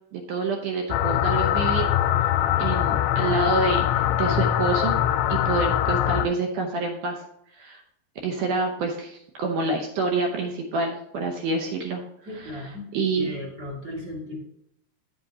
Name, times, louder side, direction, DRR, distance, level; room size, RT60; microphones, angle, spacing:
voice 1, 0.1-1.9 2.2-2.3 2.6-4.9 5.3-7.2 7.6-7.8 8.2-12.0 12.3-13.3, right 3 dB, 80° right, 2 dB, 1.8 m, -27 dB
sound 1, 0.9-6.3, left 11 dB, 85° left, 2.7 m, -22 dB
voice 2, 12.3-12.9 13.1-14.4, left 1 dB, 30° right, -3 dB, 2.0 m, -35 dB
9.8 x 7.9 x 2.8 m, 0.78 s
omnidirectional pair, 4.8 m